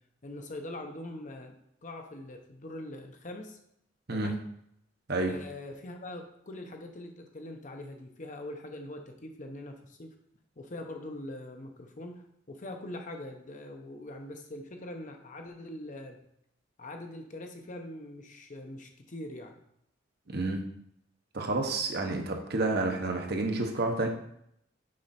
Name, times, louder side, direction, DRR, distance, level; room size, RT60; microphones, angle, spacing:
voice 1, 0.2-1.6 1.8-3.6 4.1-4.4 5.3-10.1 10.6-16.2 16.8-19.6 22.3-22.4, left 1 dB, 40° left, 4 dB, 0.8 m, -43 dB
voice 2, 20.3-20.6 21.3-24.1, right 2 dB, 55° right, 3 dB, 1.0 m, -29 dB
6.4 x 5.0 x 4.3 m, 0.74 s
head